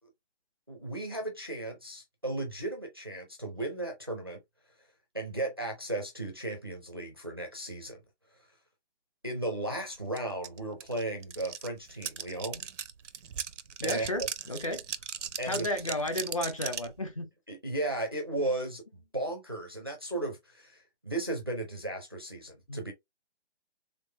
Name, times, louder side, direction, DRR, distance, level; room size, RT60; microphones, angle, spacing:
voice 1, 0.7-4.4 5.1-8.0 9.2-12.6 13.8-14.3 15.4-15.7 17.5-18.8 19.1-22.9, right 2 dB, 20° right, 0.5 m, -35 dB
sound 1, 10.2-10.3 10.4-16.9, right 7 dB, 90° right, 0.7 m, -38 dB
voice 2, 13.8-14.8 15.5-17.3 22.7-22.8, left 1 dB, 30° left, 0.7 m, -33 dB
3.8 x 3.4 x 3.1 m
hypercardioid pair, 170°, 35 cm